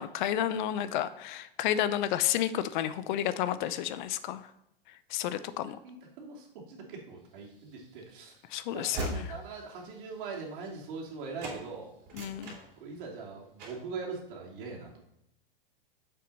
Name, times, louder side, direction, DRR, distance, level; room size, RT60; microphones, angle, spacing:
voice 1, 0.0-4.4 5.1-5.8 8.5-9.3 12.1-12.6, left 11 dB, 55° left, 14 dB, 0.5 m, -31 dB
voice 2, 5.8-8.3 8.7-11.9 12.8-15.0, right 4 dB, 60° right, -2 dB, 2.6 m, -42 dB
Train / Slam, 7.5-11.1 11.4-11.6 12.0-13.2 13.6-13.9, right 2 dB, 35° right, 2.8 m, -41 dB
6.8 x 6.4 x 4.0 m, 0.80 s
hypercardioid pair, 125°, 29 cm